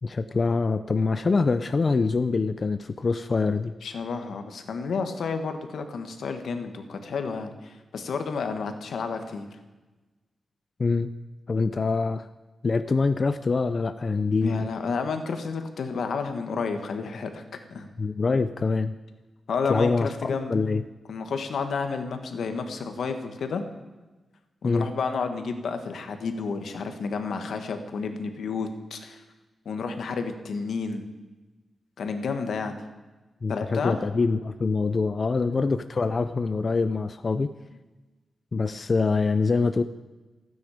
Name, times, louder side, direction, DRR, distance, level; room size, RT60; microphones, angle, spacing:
voice 1, 0.0-3.7 10.8-11.1 11.5-12.3 12.6-14.7 18.0-18.9 19.7-20.8 24.6-24.9 33.4-37.5 38.5-39.8, left 4 dB, 35° left, 10 dB, 0.4 m, -25 dB
voice 2, 3.8-9.6 14.4-17.4 17.7-17.9 19.5-20.5 21.1-23.6 24.6-29.2 29.6-31.1 32.0-32.7 33.5-34.0 35.3-35.7, left 5 dB, 80° left, 6 dB, 1.6 m, -31 dB
28.5 x 9.6 x 5.1 m, 1.2 s
wide cardioid pair, 175°, 0 cm